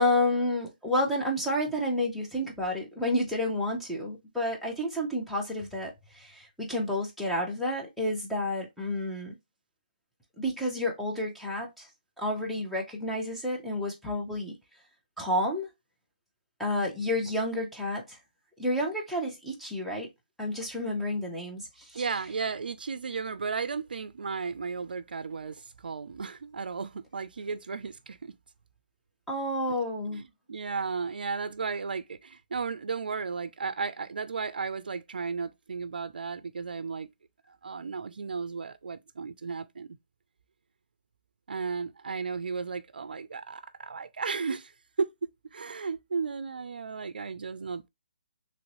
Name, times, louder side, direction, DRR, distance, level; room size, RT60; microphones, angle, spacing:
voice 1, 0.0-9.3 10.4-11.9 12.2-14.6 15.2-15.7 16.6-18.2 18.6-20.1 20.4-22.0 29.3-30.2, left 1 dB, ahead, 0.7 m, -30 dB
voice 2, 21.9-28.3 29.7-29.8 30.1-37.1 37.5-40.0 41.5-44.7 45.0-47.9, right 5 dB, 80° right, 0.4 m, -34 dB
3.1 x 2.6 x 3.0 m
hypercardioid pair, 155°, 5 cm